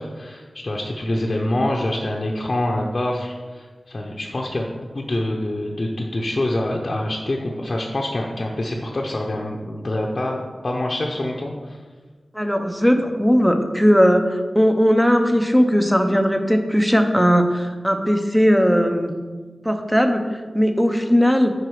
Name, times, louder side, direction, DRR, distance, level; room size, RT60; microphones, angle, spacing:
voice 1, 0.0-4.7 4.9-11.8, left 1 dB, 45° left, -1 dB, 0.6 m, -25 dB
voice 2, 12.3-19.1 19.6-21.5, equal, ahead, 6 dB, 0.6 m, -18 dB
4.9 x 4.7 x 4.6 m, 1.4 s
cardioid pair, 50°, 0 cm